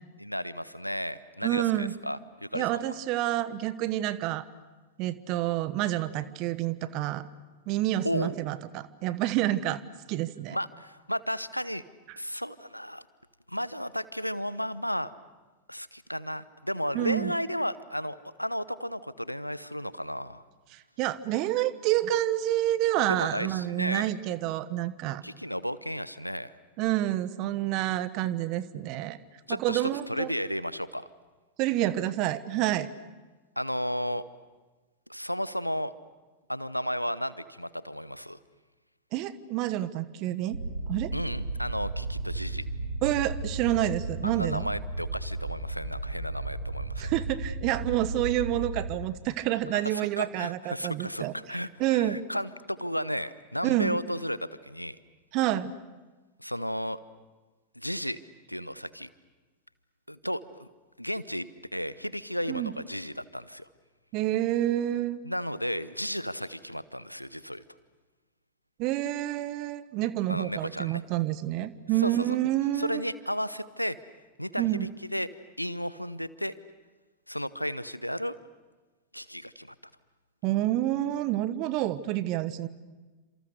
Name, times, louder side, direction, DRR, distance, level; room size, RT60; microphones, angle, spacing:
voice 1, 0.2-2.9 8.0-8.3 10.5-11.8 12.2-13.0 13.5-15.1 15.7-20.4 23.1-24.1 25.2-26.5 29.5-31.1 33.6-34.2 35.1-35.9 36.5-38.4 41.1-42.7 44.2-47.1 49.7-55.0 56.4-57.0 57.8-58.2 58.5-59.1 60.1-60.7 61.0-63.7 65.2-67.6 70.3-71.0 72.0-72.3 72.7-74.0 74.4-75.3 75.6-76.6 77.3-78.4 79.1-79.7, equal, 90° left, 17 dB, 0.8 m, -33 dB
voice 2, 1.4-1.9 2.5-4.5 5.0-7.3 7.7-9.8 10.1-10.6 16.9-17.3 20.7-25.2 26.8-29.2 29.5-30.3 31.6-32.9 39.1-40.6 40.9-41.1 43.0-44.7 47.0-52.2 53.6-54.0 55.3-55.7 62.5-62.7 64.1-65.2 68.8-73.0 74.6-74.9 80.4-82.7, right 14 dB, 40° right, 15 dB, 1.2 m, -28 dB
sound 1, 40.5-48.9, right 2 dB, 80° right, 2.2 m, -34 dB
30.0 x 27.0 x 6.6 m, 1.3 s
figure-of-eight pair, 90°, 0 cm